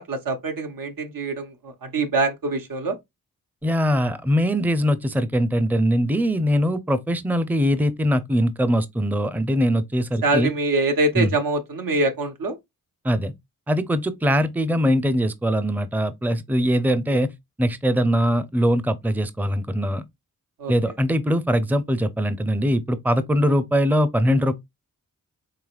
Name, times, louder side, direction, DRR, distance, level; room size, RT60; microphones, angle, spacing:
voice 1, 0.0-3.0 10.2-12.6 17.1-17.2 20.6-20.7, right 2 dB, 75° right, 0.9 m, -24 dB
voice 2, 3.6-10.5 11.2-11.4 13.0-13.3 13.7-17.3 17.6-20.0 20.7-24.5, equal, 5° right, 0.5 m, -22 dB
4.9 x 3.3 x 2.3 m
cardioid pair, 50°, 34 cm